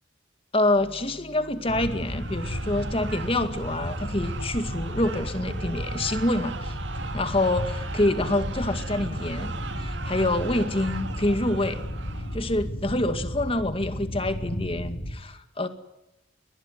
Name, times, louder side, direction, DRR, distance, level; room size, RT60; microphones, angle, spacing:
voice 1, 0.5-6.8 7.0-11.8 12.3-15.7, left 1 dB, 30° left, 9 dB, 2.1 m, -26 dB
sound 1, 0.7-11.4, right 1 dB, 40° right, 5.2 m, -46 dB
sound 2, 1.6-12.6, right 4 dB, 70° right, 2.1 m, -40 dB
Deep Sea Ambience, 1.7-15.1, equal, 55° left, 3.6 m, -33 dB
22.5 x 20.5 x 9.9 m, 0.90 s
head